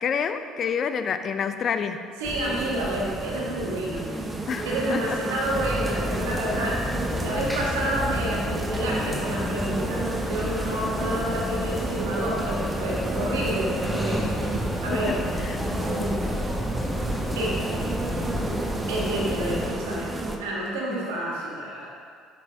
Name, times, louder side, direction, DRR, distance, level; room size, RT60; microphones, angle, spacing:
voice 1, 0.0-2.1 4.5-5.2 14.9-15.1 15.4-15.6 20.9-21.1, left 7 dB, 50° left, 9 dB, 0.4 m, -28 dB
sound 1, 2.2-20.4, right 2 dB, 25° right, 0.8 m, -33 dB
voice 2, 2.2-4.3 4.6-6.9 7.2-14.3 14.8-15.2 15.8-16.3 17.3-17.9 18.9-21.9, right 1 dB, 85° right, -3 dB, 1.5 m, -29 dB
sound 2, 5.4-19.7, equal, ahead, 1.1 m, -30 dB
7.4 x 6.1 x 3.5 m, 2.2 s
hypercardioid pair, 65°, 0 cm